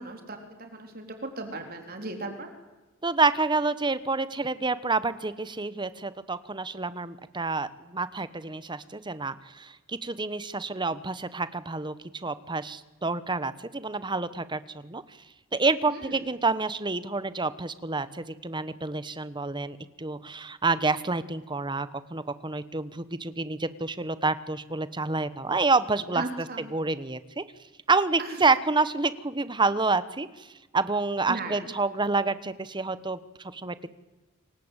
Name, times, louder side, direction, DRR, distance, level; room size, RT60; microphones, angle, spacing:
voice 1, 0.0-2.5 15.9-16.1 26.1-26.7 28.2-28.4 31.3-31.7, right 2 dB, 45° right, 5 dB, 3.8 m, -37 dB
voice 2, 3.0-11.9 12.2-15.0 15.5-26.2 26.7-27.4 27.9-30.5 30.7-33.9, right 3 dB, 20° right, 14 dB, 1.2 m, -28 dB
28.0 x 24.0 x 8.2 m, 1.1 s
head